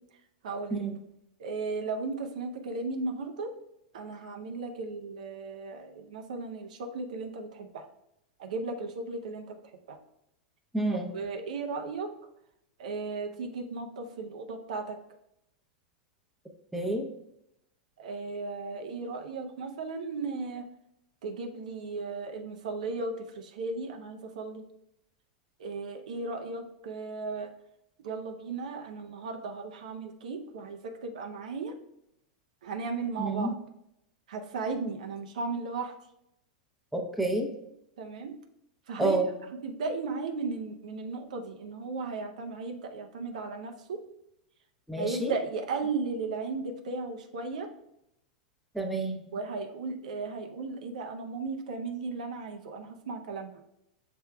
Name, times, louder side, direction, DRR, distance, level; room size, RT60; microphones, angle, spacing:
voice 1, 0.4-0.8 1.4-3.5 3.9-7.9 8.4-9.6 9.9-10.0 10.9-12.1 12.8-15.0 18.0-20.7 21.2-24.6 25.6-27.5 28.0-31.7 32.6-33.5 34.3-35.9 38.0-38.4 38.9-39.2 39.6-44.0 45.0-47.7 49.3-53.5, right 4 dB, 70° right, 5 dB, 0.6 m, -35 dB
voice 2, 10.7-11.1 16.7-17.0 33.2-33.5 36.9-37.5 39.0-39.3 44.9-45.3 48.7-49.2, right 2 dB, ahead, 1 dB, 0.7 m, -29 dB
6.7 x 3.5 x 2.2 m, 0.80 s
hypercardioid pair, 95°, 4 cm